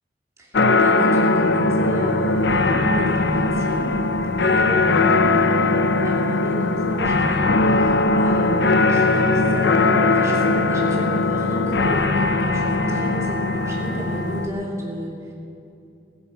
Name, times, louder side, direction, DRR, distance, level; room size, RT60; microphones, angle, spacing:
voice 1, 0.4-3.9 4.4-15.3, equal, 15° right, -4 dB, 3.0 m, -31 dB
sound 1, 0.5-14.5, left 3 dB, 80° left, 0.7 m, -19 dB
16.0 x 10.5 x 7.3 m, 2.6 s
head